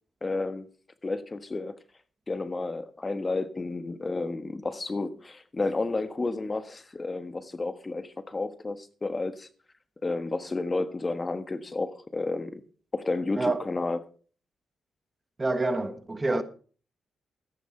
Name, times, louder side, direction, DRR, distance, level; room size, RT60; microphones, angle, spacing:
voice 1, 0.2-0.7 1.0-1.7 2.3-9.5 10.0-12.6 12.9-14.0, left 3 dB, 30° left, 1.3 m, -31 dB
voice 2, 15.4-16.4, right 2 dB, 25° right, 1.4 m, -27 dB
13.5 x 10.5 x 4.4 m
cardioid pair, 75°, 0 cm